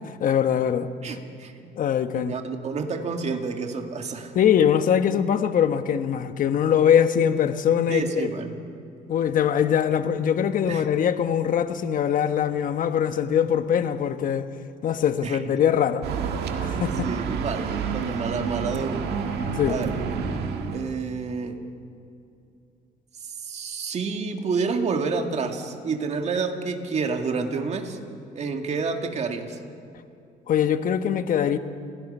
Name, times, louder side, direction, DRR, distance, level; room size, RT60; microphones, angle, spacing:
voice 1, 0.2-0.9 1.8-2.4 4.3-8.3 9.1-14.5 14.8-16.0 16.6-17.1 19.5-19.8 30.5-31.6, left 9 dB, 55° left, 9 dB, 1.2 m, -22 dB
voice 2, 1.0-1.7 2.0-4.3 7.9-8.6 10.6-10.8 15.2-15.4 17.0-19.1 19.7-19.9 20.7-21.6 23.2-28.0 28.3-29.6, right 4 dB, 40° right, 4 dB, 2.0 m, -29 dB
sound 1, 16.0-21.0, right 6 dB, 75° right, 1.8 m, -29 dB
29.0 x 17.0 x 5.5 m, 2.6 s
cardioid pair, 110°, 17 cm